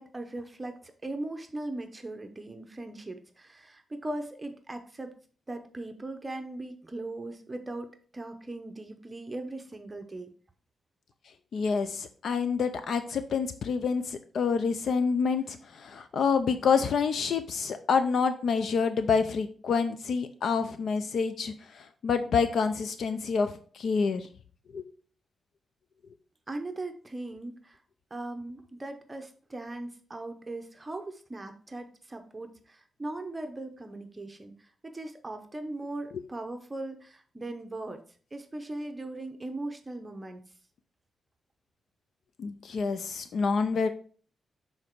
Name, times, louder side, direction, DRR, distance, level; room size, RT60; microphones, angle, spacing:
voice 1, 0.0-5.1 5.5-10.3 26.5-27.8 28.1-38.0 38.3-40.4, right 2 dB, 20° right, 6 dB, 0.7 m, -39 dB
voice 2, 11.5-24.3 24.7-24.8 42.4-43.9, left 5 dB, 65° left, 10 dB, 0.5 m, -27 dB
7.1 x 3.9 x 4.5 m, 0.43 s
wide cardioid pair, 140°, 0 cm